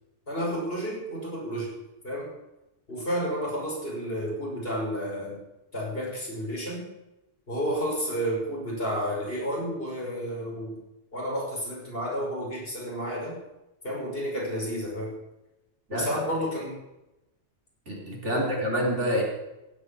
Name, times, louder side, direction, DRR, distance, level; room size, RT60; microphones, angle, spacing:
voice 1, 0.3-1.7 2.0-2.3 2.9-5.4 5.7-6.8 7.5-10.8 11.1-13.4 13.8-15.1 15.9-16.8 18.3-18.5, equal, 55° left, -3 dB, 6.2 m, -31 dB
voice 2, 17.9-19.2, equal, 80° right, -2 dB, 4.4 m, -27 dB
16.0 x 9.0 x 8.6 m, 0.95 s
omnidirectional pair, 1.2 m